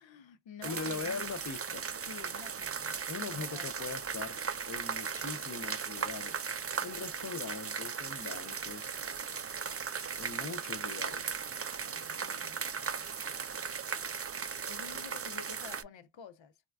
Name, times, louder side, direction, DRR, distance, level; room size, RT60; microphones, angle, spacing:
voice 1, 0.0-1.3 2.0-3.0 3.3-3.7 11.8-12.9 14.7-16.6, left 6 dB, 80° left, 0.6 m, -50 dB
voice 2, 0.6-1.9 3.1-4.4 4.7-6.4 6.8-8.9 10.2-11.4, left 5 dB, 40° left, 0.5 m, -41 dB
sound 1, 0.6-15.8, right 6 dB, 35° right, 0.4 m, -37 dB
4.2 x 2.2 x 2.3 m
wide cardioid pair, 60°, 45 cm